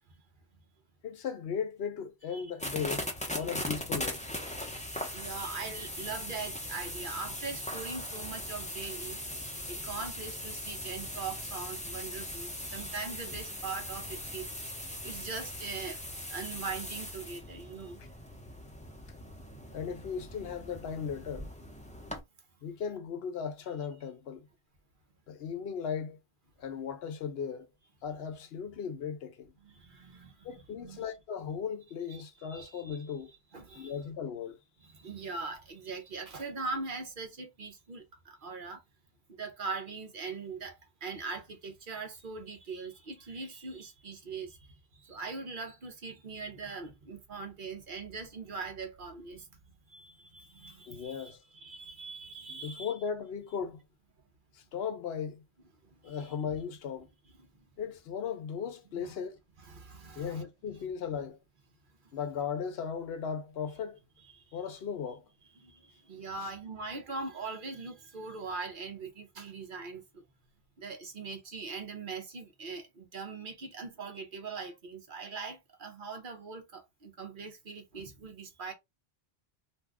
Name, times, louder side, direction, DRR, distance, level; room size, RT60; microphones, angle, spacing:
voice 1, 1.0-3.1 3.3-4.3 18.0-18.1 19.7-21.5 22.6-24.5 25.3-26.2 26.6-27.7 28.0-29.5 30.4-33.3 33.8-34.6 50.9-51.4 52.5-53.8 54.5-55.4 56.0-57.1 57.8-59.4 60.2-61.4 62.1-64.0 64.5-65.2 66.4-66.5, left 7 dB, 75° left, 0.8 m, -37 dB
sound 1, 2.6-22.2, left 1 dB, 10° left, 0.6 m, -40 dB
voice 2, 4.7-14.5 15.0-16.0 16.3-18.0 29.6-31.0 32.1-33.0 33.5-33.9 34.8-38.8 39.3-49.5 49.9-52.9 55.8-56.3 57.4-57.5 58.9-59.1 59.7-60.4 64.3-64.6 65.6-70.2 70.8-78.7, right 4 dB, 55° right, 0.9 m, -41 dB
2.6 x 2.3 x 3.4 m
omnidirectional pair, 1.1 m